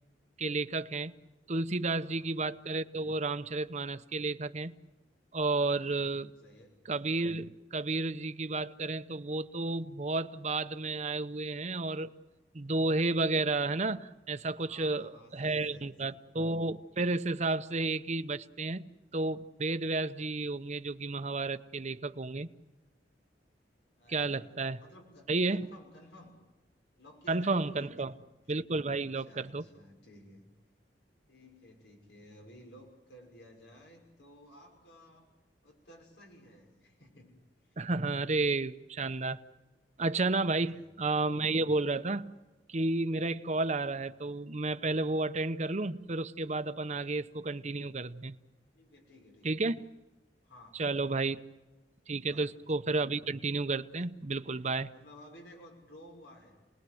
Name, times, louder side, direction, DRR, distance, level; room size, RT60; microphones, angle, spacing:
voice 1, 0.4-1.1 1.5-4.7 5.3-6.3 6.9-12.1 12.5-18.8 19.1-22.5 24.1-24.8 25.3-25.7 27.3-28.1 28.5-29.6 37.8-39.4 40.0-42.3 42.7-48.3 49.4-49.7 50.8-51.4 52.1-54.9, right 3 dB, 40° right, 11 dB, 0.9 m, -32 dB
voice 2, 2.0-2.3 5.6-5.9 6.4-6.8 14.6-16.2 24.0-24.5 24.8-26.4 27.0-28.2 28.9-30.5 31.3-35.3 35.6-37.8 40.6-40.9 48.7-49.7 50.4-51.3 52.2-52.5 54.9-56.6, left 1 dB, 85° left, 1 dB, 6.0 m, -56 dB
30.0 x 20.5 x 7.9 m, 1.1 s
head